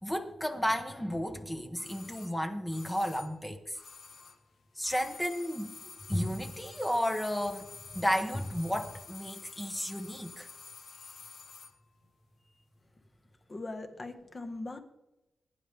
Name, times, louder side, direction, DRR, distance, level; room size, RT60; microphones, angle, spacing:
voice 1, 0.0-3.8 4.8-5.7 6.1-7.7 7.9-10.5, equal, 10° left, 4 dB, 1.2 m, -33 dB
sound 1, 1.8-4.5 4.8-11.8 12.0-12.1, left 4 dB, 70° left, 1.5 m, -50 dB
voice 2, 13.5-14.8, left 2 dB, 30° left, 6 dB, 1.6 m, -40 dB
21.0 x 10.5 x 3.6 m, 0.95 s
wide cardioid pair, 130°, 0 cm